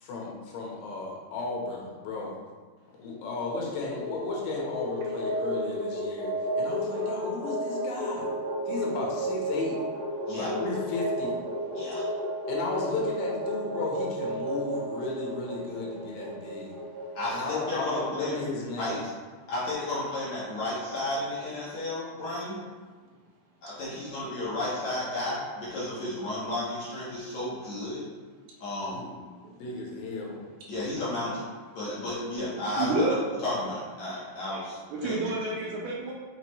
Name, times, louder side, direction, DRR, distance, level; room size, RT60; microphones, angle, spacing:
voice 1, 0.0-2.4 3.0-8.3 8.7-9.8 10.3-11.4 12.5-16.8 17.3-19.0 28.9-29.1 29.5-30.4, left 3 dB, 80° left, -3 dB, 3.3 m, -34 dB
sound 1, 3.5-17.8, equal, 60° right, 2.1 m, -33 dB
voice 2, 11.7-12.0 17.2-18.3 18.8-19.0 19.5-22.6 23.6-28.0 28.6-29.0 30.7-31.5 31.8-33.0 33.4-34.8 35.0-35.1, left 1 dB, 60° left, -8 dB, 2.0 m, -33 dB
voice 3, 32.8-33.2 34.5-34.6 34.9-36.1, right 2 dB, 75° right, -3 dB, 3.0 m, -29 dB
6.3 x 6.1 x 3.1 m, 1.5 s
omnidirectional pair, 4.8 m